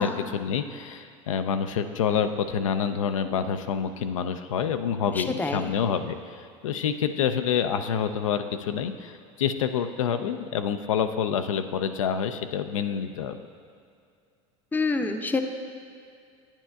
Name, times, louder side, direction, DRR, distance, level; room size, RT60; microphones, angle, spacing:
voice 1, 0.0-13.4, left 7 dB, 90° left, 8 dB, 0.4 m, -27 dB
voice 2, 5.1-5.7 14.7-15.4, left 3 dB, 10° left, 6 dB, 0.5 m, -27 dB
9.0 x 8.8 x 2.3 m, 2.4 s
hypercardioid pair, 85°, 16 cm